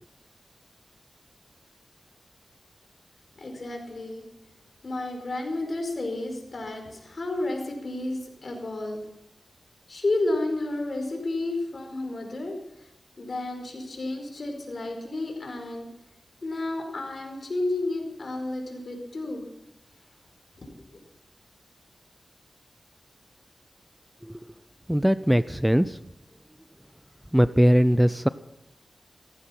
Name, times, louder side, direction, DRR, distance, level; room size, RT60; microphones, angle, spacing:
voice 1, 3.4-4.2 4.8-9.0 9.9-12.5 13.2-15.9 16.4-19.4 20.6-20.7, left 2 dB, 55° left, 3 dB, 4.9 m, -31 dB
voice 2, 24.9-26.0 27.3-28.3, equal, 5° right, 15 dB, 0.5 m, -20 dB
16.5 x 14.5 x 5.8 m, 0.85 s
cardioid pair, 60°, 0 cm